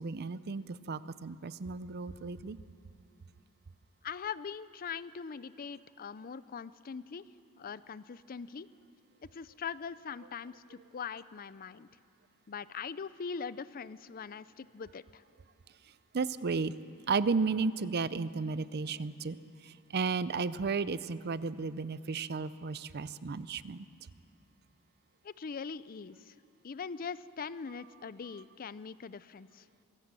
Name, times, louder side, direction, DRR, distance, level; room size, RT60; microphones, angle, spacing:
voice 1, 0.0-2.6 16.1-16.7 17.1-19.4 19.6-23.9, right 4 dB, 45° right, 16 dB, 0.5 m, -33 dB
voice 2, 4.0-7.2 7.6-8.7 9.2-11.9 12.5-15.2 25.2-26.4 26.6-29.7, left 6 dB, 40° left, 17 dB, 0.4 m, -42 dB
23.0 x 16.5 x 7.5 m, 2.4 s
head